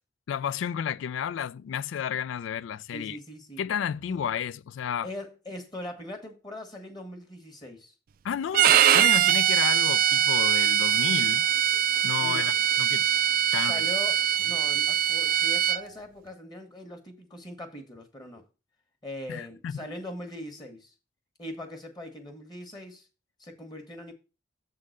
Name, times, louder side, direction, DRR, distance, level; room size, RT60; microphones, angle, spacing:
voice 1, 0.3-3.2 3.6-5.1 8.2-11.4 12.0-13.1 13.5-13.8 19.3-19.9, left 8 dB, 80° left, 0.3 m, -32 dB
voice 2, 2.9-3.6 4.0-4.2 5.0-7.9 12.2-12.5 13.6-18.4 19.0-20.9 21.4-23.1 23.4-24.1, left 1 dB, 20° left, 1.2 m, -41 dB
Bowed string instrument, 8.5-15.8, right 11 dB, 45° right, 0.3 m, -22 dB
7.3 x 3.8 x 6.4 m
head